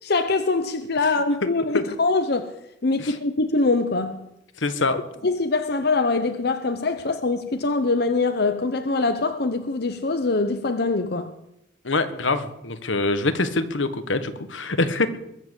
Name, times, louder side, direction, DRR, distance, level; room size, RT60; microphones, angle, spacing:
voice 1, 0.0-2.5 2.8-4.2 4.9-11.3, left 3 dB, 55° left, 0.8 m, -23 dB
voice 2, 4.6-5.0 11.8-15.1, left 3 dB, 80° left, 1.4 m, -24 dB
21.5 x 7.6 x 8.2 m
head